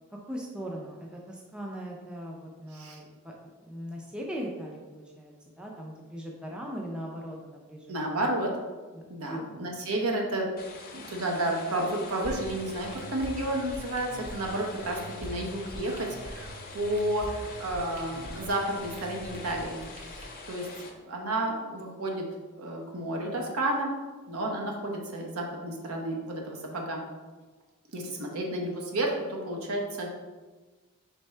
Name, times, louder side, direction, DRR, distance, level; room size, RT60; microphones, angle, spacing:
voice 1, 0.3-3.3 3.6-7.9 8.9-9.0 9.3-9.6, equal, 5° right, -2 dB, 0.4 m, -39 dB
voice 2, 7.9-8.5 9.1-10.5 10.9-19.8 20.1-20.7 20.9-22.3 22.6-23.9 24.3-27.0 27.9-30.1, right 1 dB, 70° right, 0 dB, 0.8 m, -31 dB
sound 1, 10.6-20.9, left 3 dB, 40° left, 0.6 m, -45 dB
sound 2, 12.2-20.2, equal, 30° right, 0.7 m, -44 dB
4.4 x 3.5 x 3.2 m, 1.3 s
head